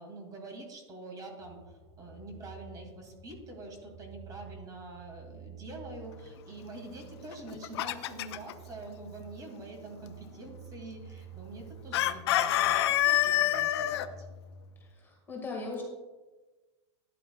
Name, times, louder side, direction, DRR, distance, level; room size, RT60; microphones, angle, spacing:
voice 1, 0.0-14.3, right 2 dB, 25° right, 2 dB, 2.4 m, -46 dB
sound 1, 1.4-14.8, right 5 dB, 75° right, 3.0 m, -51 dB
Chicken rooster, 7.3-8.5 11.9-14.1, left 13 dB, 65° left, 0.6 m, -26 dB
voice 2, 14.8-15.8, left 3 dB, 15° left, -1 dB, 1.8 m, -39 dB
12.5 x 10.0 x 2.3 m, 1.2 s
supercardioid pair, 135°, 15 cm